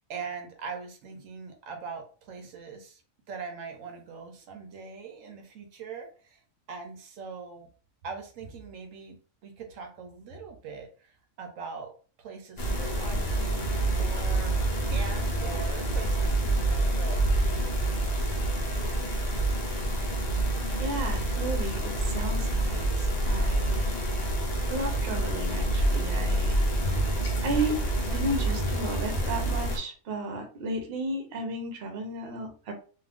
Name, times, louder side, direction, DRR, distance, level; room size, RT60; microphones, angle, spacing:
voice 1, 0.1-3.0 3.3-6.4 6.7-7.7 8.0-11.9 12.2-14.6 14.9-18.1 18.6-18.7, right 5 dB, 80° right, 4 dB, 1.0 m, -42 dB
sound 1, 12.6-29.8, right 1 dB, 45° left, 0.6 m, -27 dB
voice 2, 20.8-23.9 24.7-26.6 27.0-27.1 27.4-32.7, right 2 dB, 55° right, 4 dB, 0.8 m, -33 dB
2.4 x 2.4 x 3.4 m, 0.40 s
omnidirectional pair, 1.4 m